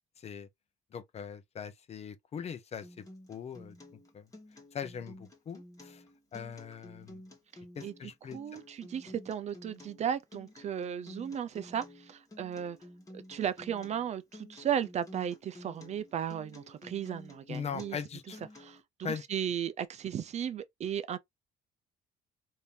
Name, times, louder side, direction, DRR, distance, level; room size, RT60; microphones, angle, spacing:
voice 1, 0.2-0.5 0.9-2.9 3.3-3.8 4.1-4.2 4.7-6.0 6.3-7.2 7.7-8.4 17.5-18.4 19.0-19.2, left 7 dB, 40° left, 0.6 m, -40 dB
Acoustic guitar, 2.8-18.8, left 1 dB, 20° left, 1.3 m, -52 dB
voice 2, 8.3-12.8 13.1-18.0 18.6-21.2, right 9 dB, 40° right, 0.4 m, -35 dB
3.5 x 2.7 x 2.7 m
cardioid pair, 110°, 17 cm